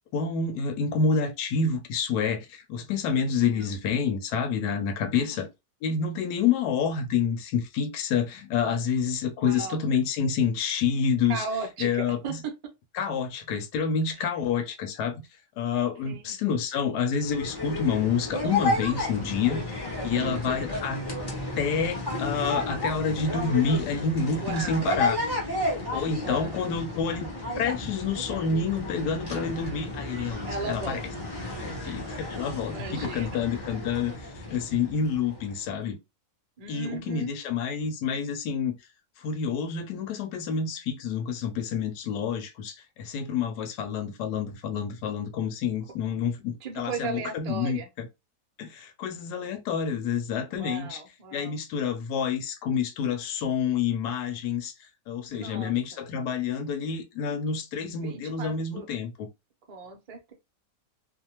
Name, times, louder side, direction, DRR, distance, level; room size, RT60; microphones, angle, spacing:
voice 1, 0.1-5.5 5.8-11.5 11.8-12.4 12.9-15.2 15.6-19.6 20.0-21.0 21.6-25.2 25.9-27.3 27.6-31.0 31.6-36.0 36.7-38.7 39.2-48.1 48.6-51.0 51.3-54.7 55.1-59.1, left 6 dB, 85° left, 1.1 m, -28 dB
voice 2, 3.4-3.7 5.2-5.4 9.4-9.8 11.3-12.5 14.2-14.3 16.0-16.4 20.1-20.6 24.4-24.9 26.2-26.6 30.4-31.0 32.6-33.4 36.6-37.3 46.6-47.9 50.5-51.6 55.3-56.0 57.8-58.9 59.7-60.3, right 4 dB, 50° right, 0.4 m, -37 dB
sound 1, 17.1-35.6, left 2 dB, 30° left, 0.4 m, -32 dB
2.6 x 2.3 x 2.8 m
omnidirectional pair, 1.7 m